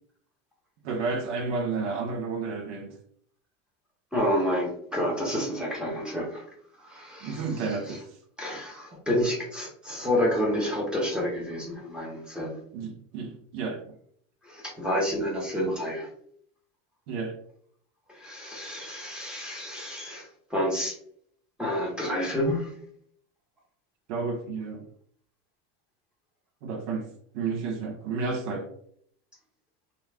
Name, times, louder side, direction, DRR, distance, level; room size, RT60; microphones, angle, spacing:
voice 1, 0.8-2.9 7.2-8.0 12.7-13.8 17.1-17.3 24.1-24.8 26.6-27.1 27.3-28.7, right 4 dB, 75° right, 0.8 m, -31 dB
voice 2, 4.1-6.4 6.8-7.5 7.9-8.0 8.4-12.6 14.4-16.1 18.1-20.9 21.6-22.7, equal, ahead, 0.8 m, -29 dB
2.4 x 2.3 x 3.3 m
supercardioid pair, 125°, 36 cm